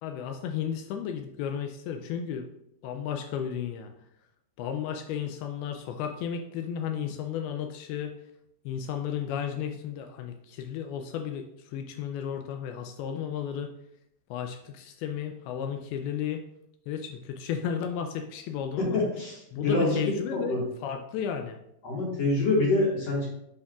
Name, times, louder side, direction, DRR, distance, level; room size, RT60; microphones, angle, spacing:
voice 1, 0.0-2.5 2.8-3.9 4.6-8.1 8.7-13.7 14.3-16.4 16.9-19.0 19.5-21.6, left 8 dB, 85° left, 5 dB, 2.4 m, -33 dB
voice 2, 18.8-20.0 20.3-20.6 21.8-23.3, left 2 dB, 55° left, -4 dB, 2.0 m, -26 dB
8.0 x 5.7 x 2.4 m, 0.78 s
omnidirectional pair, 4.4 m